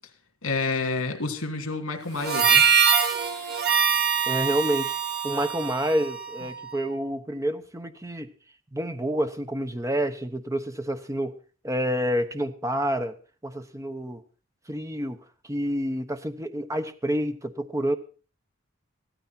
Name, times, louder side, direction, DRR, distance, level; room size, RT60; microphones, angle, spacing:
voice 1, 0.4-2.6, left 3 dB, 75° left, 5 dB, 2.9 m, -29 dB
Harmonica, 2.2-6.8, right 7 dB, 50° right, 2.1 m, -23 dB
voice 2, 4.3-4.9 5.2-8.3 8.7-11.4 11.6-13.1 13.4-14.2 14.7-15.2 15.4-17.9, equal, 15° right, 8 dB, 1.0 m, -28 dB
15.5 x 13.5 x 4.3 m, 0.37 s
head